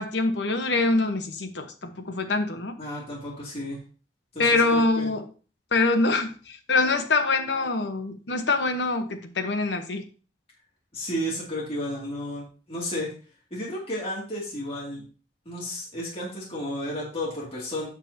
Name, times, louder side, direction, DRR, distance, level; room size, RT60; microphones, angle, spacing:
voice 1, 0.0-2.8 4.4-5.2 5.7-10.0, left 3 dB, 75° left, 6 dB, 1.0 m, -24 dB
voice 2, 2.8-3.8 4.3-5.1 10.9-13.1 13.5-15.1 15.5-17.9, equal, 35° left, -5 dB, 2.4 m, -32 dB
8.1 x 7.1 x 2.8 m, 0.38 s
head